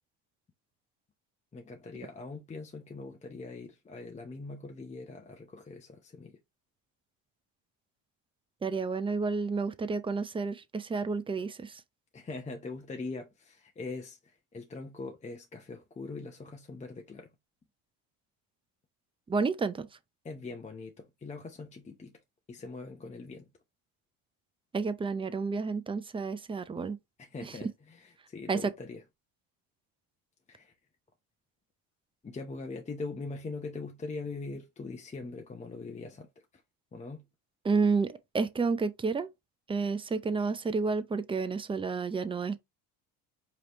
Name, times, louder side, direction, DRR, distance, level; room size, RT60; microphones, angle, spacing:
voice 1, 1.5-6.4 12.1-17.3 20.2-22.2 22.5-23.5 27.2-29.0 30.5-30.7 32.2-36.3 36.9-37.3, left 3 dB, 15° left, 0.7 m, -42 dB
voice 2, 8.6-11.8 19.3-19.9 24.7-27.0 28.5-28.7 37.6-39.3 39.7-42.6, right 4 dB, 15° right, 0.5 m, -30 dB
5.0 x 3.0 x 3.0 m
supercardioid pair, 105°, 42 cm